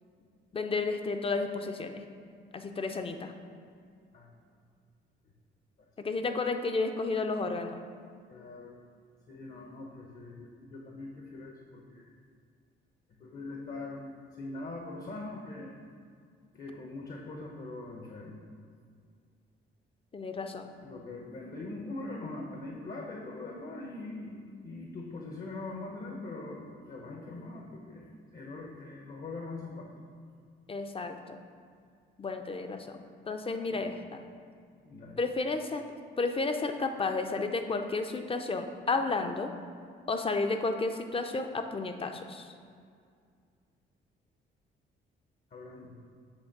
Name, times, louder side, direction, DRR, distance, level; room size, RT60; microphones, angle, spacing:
voice 1, 0.5-2.0 2.5-3.3 6.0-7.8 20.1-20.7 30.7-31.4 32.2-33.0 33.3-34.2 35.2-35.8 36.2-39.5 40.1-42.5, left 3 dB, 30° left, 6 dB, 0.6 m, -32 dB
voice 2, 8.3-8.8 9.3-12.1 13.2-15.8 16.5-18.4 20.8-29.9 33.7-33.9 34.8-35.2 45.5-45.9, left 2 dB, 45° left, 0 dB, 1.0 m, -42 dB
8.1 x 3.2 x 5.9 m, 2.2 s
cardioid pair, 90°, 20 cm